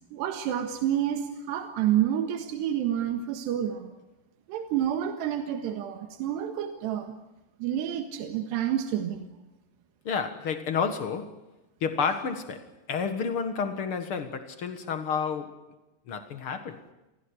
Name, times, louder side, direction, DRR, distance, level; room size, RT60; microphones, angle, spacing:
voice 1, 0.1-3.9 4.5-7.1 7.6-9.3, right 10 dB, 85° right, 3.7 m, -29 dB
voice 2, 10.0-11.4 11.8-15.6 16.1-16.8, left 6 dB, 60° left, 1.4 m, -30 dB
27.5 x 16.5 x 9.9 m
omnidirectional pair, 4.8 m